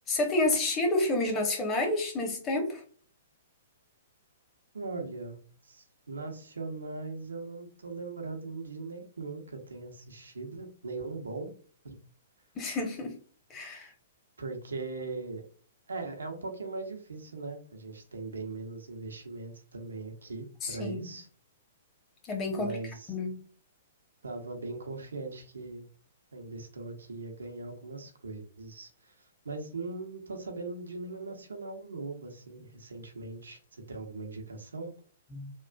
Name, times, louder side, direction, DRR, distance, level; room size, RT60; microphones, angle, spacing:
voice 1, 0.1-2.8 12.6-13.1 13.5-13.9 20.6-21.1 22.3-22.8 23.1-23.5 35.3-35.5, left 2 dB, 25° left, 0.9 m, -29 dB
voice 2, 4.7-11.5 11.8-12.0 14.4-15.5 15.9-21.3 22.5-23.1 24.2-25.9 26.3-34.9, right 3 dB, 75° right, 0.7 m, -40 dB
3.0 x 2.4 x 2.3 m
figure-of-eight pair, 115°, 0 cm